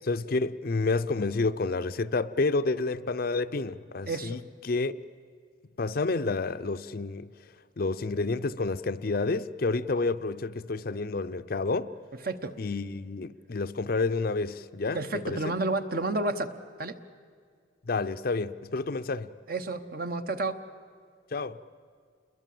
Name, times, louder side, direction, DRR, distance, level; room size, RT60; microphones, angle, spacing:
voice 1, 0.1-4.4 4.6-4.9 5.8-7.3 7.8-11.9 12.6-15.5 17.9-19.3 21.3-21.6, left 3 dB, 50° left, 0.5 m, -29 dB
voice 2, 4.1-4.4 12.2-12.5 14.9-16.5 16.8-17.0 19.5-20.6, right 2 dB, 50° right, 1.0 m, -30 dB
28.5 x 21.5 x 7.7 m
head